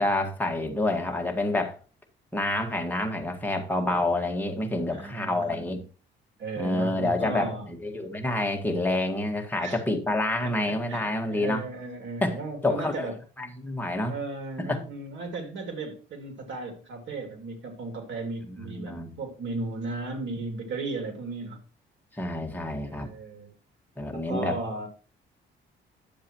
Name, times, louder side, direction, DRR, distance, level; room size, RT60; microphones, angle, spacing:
voice 1, 0.0-1.8 2.3-5.8 6.6-11.6 12.2-12.4 12.6-13.1 13.4-14.1 14.7-14.8 18.5-19.2 22.1-23.1 24.0-24.6, left 1 dB, 10° left, 1.8 m, -28 dB
voice 2, 4.9-5.7 6.4-7.7 9.6-9.8 10.4-13.1 14.1-21.6 22.8-23.5 24.1-24.9, right 3 dB, 70° right, 2.5 m, -35 dB
10.0 x 7.4 x 3.0 m
cardioid pair, 90°, 20 cm